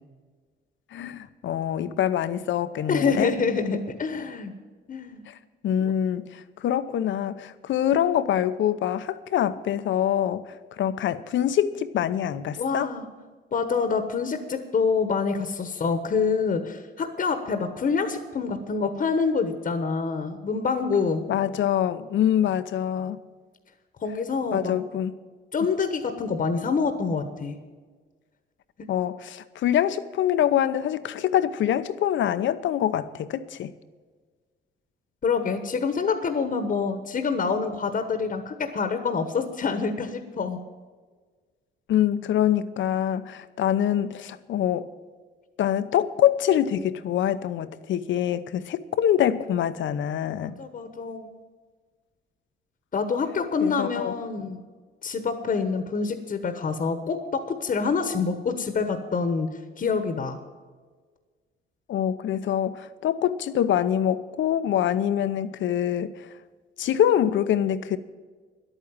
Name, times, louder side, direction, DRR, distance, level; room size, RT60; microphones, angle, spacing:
voice 1, 0.9-3.3 5.3-5.4 5.6-10.4 10.8-12.9 21.3-23.2 24.5-25.1 25.6-25.8 28.9-33.7 41.9-44.9 45.6-50.6 53.6-54.1 61.9-66.3 66.8-68.0, left 10 dB, 70° left, 13 dB, 0.8 m, -25 dB
voice 2, 2.9-4.5 4.9-5.2 12.6-13.0 13.5-21.2 24.0-24.7 25.5-27.6 35.2-40.6 50.4-51.3 52.9-54.6 55.0-60.4, left 5 dB, 45° left, 8 dB, 1.2 m, -26 dB
11.0 x 9.0 x 8.7 m, 1.5 s
cardioid pair, 90°, 20 cm